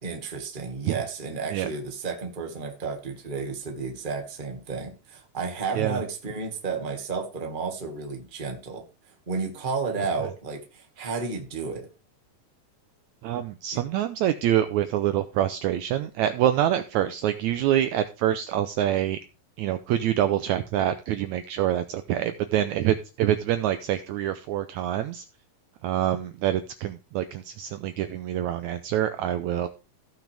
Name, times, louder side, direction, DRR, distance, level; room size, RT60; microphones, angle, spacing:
voice 1, 0.0-8.8 9.3-11.9, right 4 dB, 25° right, 3 dB, 1.1 m, -32 dB
voice 2, 13.2-19.2 19.6-25.2 25.8-29.7, right 11 dB, 85° right, 10 dB, 1.6 m, -26 dB
16.0 x 6.0 x 3.4 m, 0.30 s
omnidirectional pair, 4.0 m